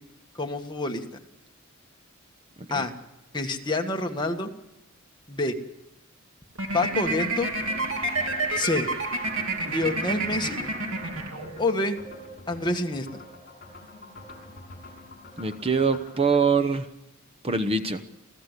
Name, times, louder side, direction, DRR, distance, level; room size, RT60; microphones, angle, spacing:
voice 1, 0.4-1.0 2.7-2.9 3.3-4.5 5.3-5.5 6.7-7.5 8.6-8.9 9.6-10.6 11.6-12.0 12.5-13.2, left 2 dB, 20° left, 2 dB, 1.8 m, -27 dB
sound 1, 6.6-11.8, right 2 dB, 80° right, 2.8 m, -29 dB
sound 2, 6.8-16.4, left 2 dB, 45° left, 7.0 m, -45 dB
voice 2, 15.4-16.9 17.4-18.0, right 4 dB, 30° right, 7 dB, 1.0 m, -24 dB
28.5 x 16.0 x 8.3 m, 0.96 s
head